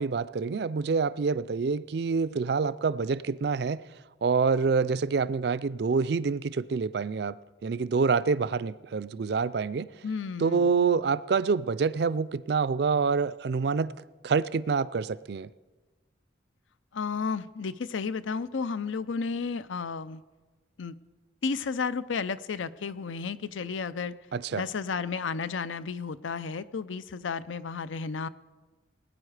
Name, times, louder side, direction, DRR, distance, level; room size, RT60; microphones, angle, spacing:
voice 1, 0.0-3.8 4.2-9.9 10.4-13.9 14.2-15.5 24.3-24.6, right 5 dB, 55° right, 0.4 m, -27 dB
voice 2, 10.0-10.7 16.9-20.2 20.8-21.0 21.4-24.1 24.5-28.3, left 5 dB, 85° left, 0.6 m, -32 dB
20.0 x 9.8 x 4.9 m
head